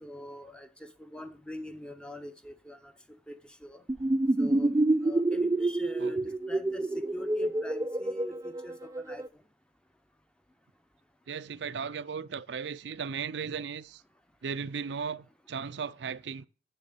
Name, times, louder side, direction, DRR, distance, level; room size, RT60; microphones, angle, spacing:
voice 1, 0.0-2.9 3.3-3.4 3.6-3.8 4.4-4.7 5.0-6.2 6.5-6.9 7.1-9.2, equal, 5° left, 0.7 m, -43 dB
sound 1, 3.9-9.3, right 2 dB, 20° right, 0.4 m, -28 dB
voice 2, 11.3-14.0 14.4-16.5, right 6 dB, 90° right, 0.5 m, -36 dB
7.5 x 7.1 x 6.8 m
head